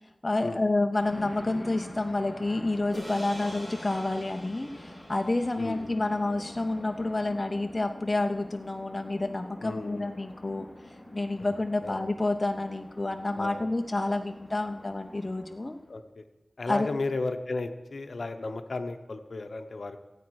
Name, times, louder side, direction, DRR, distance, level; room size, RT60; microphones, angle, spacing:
voice 1, 0.2-15.8 16.7-16.9, left 2 dB, 30° left, 6 dB, 0.6 m, -29 dB
sound 1, 1.0-15.9, left 1 dB, 5° left, 3.2 m, -45 dB
sound 2, 2.9-7.5, equal, 35° right, 4.0 m, -47 dB
voice 2, 5.6-6.0 9.6-10.1 11.8-12.0 13.4-13.6 15.9-16.2 16.6-20.0, left 3 dB, 65° left, 8 dB, 0.8 m, -34 dB
16.5 x 8.5 x 4.7 m, 1.1 s
wide cardioid pair, 95°, 0 cm